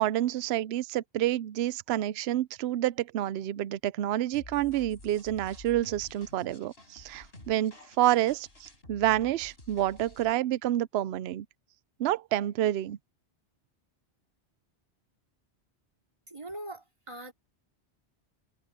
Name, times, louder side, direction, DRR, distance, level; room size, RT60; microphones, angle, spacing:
voice 1, 0.0-11.5 12.0-13.0, right 13 dB, 70° right, 0.8 m, -28 dB
sound 1, 4.3-10.3, left 2 dB, 60° left, 4.7 m, -51 dB
voice 2, 16.3-17.3, right 1 dB, 25° right, 2.9 m, -41 dB
omnidirectional pair, 1.2 m